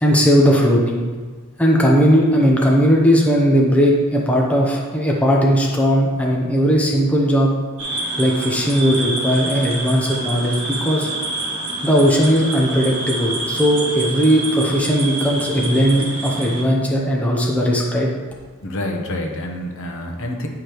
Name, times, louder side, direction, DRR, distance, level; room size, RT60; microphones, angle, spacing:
voice 1, 0.0-1.1 1.6-7.5 8.2-11.1 11.8-18.1, equal, 5° left, -2 dB, 0.7 m, -17 dB
sound 1, 7.8-16.6, right 2 dB, 65° right, 1.4 m, -27 dB
voice 2, 18.6-20.5, left 1 dB, 60° left, 2 dB, 1.0 m, -27 dB
9.8 x 4.9 x 3.0 m, 1.4 s
head